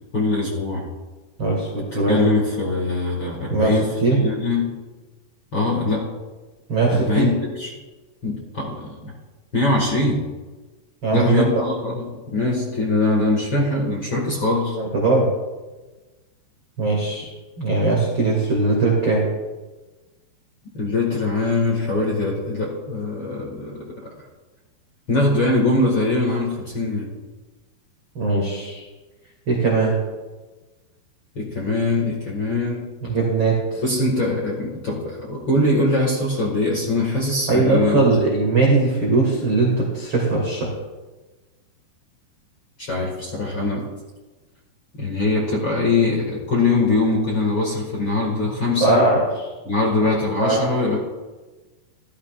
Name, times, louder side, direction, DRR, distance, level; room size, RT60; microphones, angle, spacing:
voice 1, 0.1-0.9 2.1-4.7 5.5-6.1 6.9-7.7 8.2-9.1 9.5-10.2 11.1-14.8 20.7-24.1 25.1-27.1 31.3-32.9 33.8-38.1 42.8-43.9 45.0-49.0 49.6-51.0, left 2 dB, 60° left, -3 dB, 1.3 m, -22 dB
voice 2, 1.4-2.3 3.5-3.7 4.0-4.2 6.7-7.3 11.0-11.5 14.8-15.3 16.8-17.3 17.6-19.2 28.1-28.8 29.5-29.9 33.1-33.8 37.5-40.7 48.8-49.5 50.0-50.1 50.4-50.7, right 3 dB, 50° right, -3 dB, 1.5 m, -20 dB
14.5 x 12.5 x 2.4 m, 1.2 s
omnidirectional pair, 5.1 m